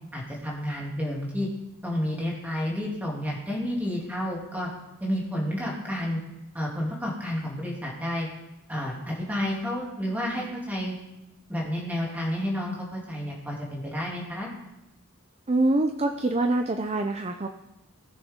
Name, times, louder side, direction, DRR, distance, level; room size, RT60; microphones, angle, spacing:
voice 1, 0.1-1.5 1.8-4.7 5.0-6.2 6.5-8.3 8.7-10.9 11.5-14.5, equal, 5° right, -4 dB, 2.6 m, -30 dB
voice 2, 15.5-17.5, right 2 dB, 30° right, 5 dB, 0.5 m, -25 dB
18.5 x 6.6 x 3.7 m, 0.92 s
head